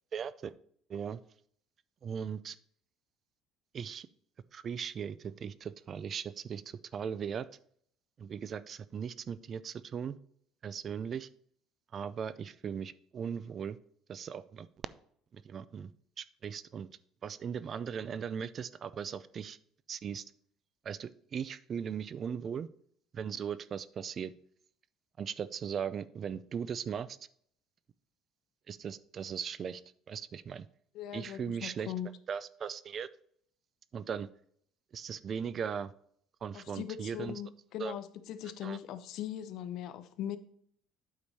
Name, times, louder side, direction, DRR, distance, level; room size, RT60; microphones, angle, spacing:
voice 1, 0.1-0.5 0.9-1.2 2.0-2.6 3.7-4.1 4.5-7.5 8.2-10.2 10.6-11.3 11.9-13.8 14.1-14.7 15.3-15.9 16.2-16.9 17.2-19.6 19.9-20.2 20.8-22.7 23.1-24.3 25.2-27.2 28.7-29.8 30.1-30.7 31.1-31.9 32.3-33.1 33.9-34.3 34.9-35.9 36.4-37.4 37.8-38.0 38.6-38.8, right 7 dB, 35° right, 0.3 m, -38 dB
voice 2, 30.9-32.1 36.5-40.4, left 10 dB, 60° left, 0.7 m, -40 dB
8.5 x 4.8 x 4.1 m
cardioid pair, 145°, 0 cm